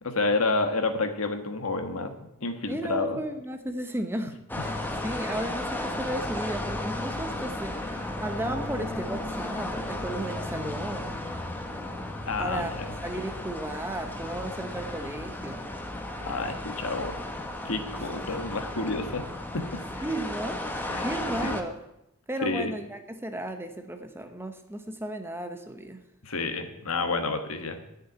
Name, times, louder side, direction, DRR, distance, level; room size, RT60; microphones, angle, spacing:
voice 1, 0.0-2.1 2.4-3.2 12.3-12.9 16.2-17.2 17.6-19.3 19.5-20.1 20.9-21.1 21.4-21.6 22.4-22.7 26.2-27.8, left 3 dB, 70° left, 7 dB, 1.4 m, -29 dB
voice 2, 2.7-11.1 12.4-12.7 13.0-15.7 18.3-18.4 20.0-21.8 22.3-26.0, right 1 dB, 10° right, 7 dB, 0.9 m, -34 dB
sound 1, 4.5-21.6, left 1 dB, 10° left, 1.2 m, -34 dB
11.0 x 6.7 x 8.9 m, 0.83 s
head